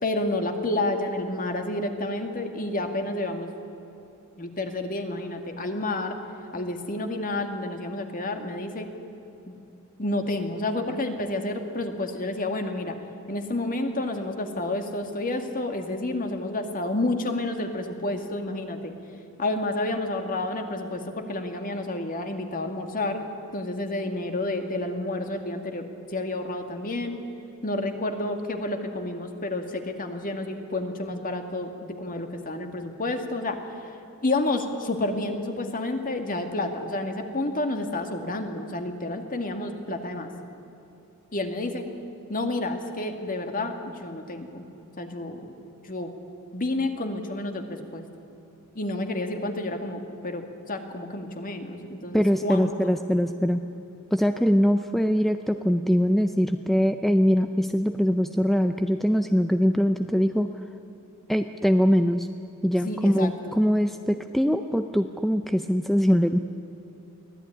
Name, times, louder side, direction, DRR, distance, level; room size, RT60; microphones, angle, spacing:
voice 1, 0.0-3.5 4.4-6.2 6.5-8.9 9.5-9.6 10.0-13.0 13.3-18.9 19.4-23.2 23.5-25.8 26.1-27.1 27.6-33.6 34.2-40.3 41.3-41.9 42.3-44.6 45.0-45.4 45.8-46.1 46.5-48.1 48.8-53.0 62.9-63.6, left 2 dB, 40° left, 5 dB, 2.2 m, -30 dB
voice 2, 52.1-53.6 54.1-60.5 61.3-62.3 62.6-66.4, equal, ahead, 7 dB, 0.6 m, -22 dB
24.0 x 16.5 x 9.9 m, 2.9 s
head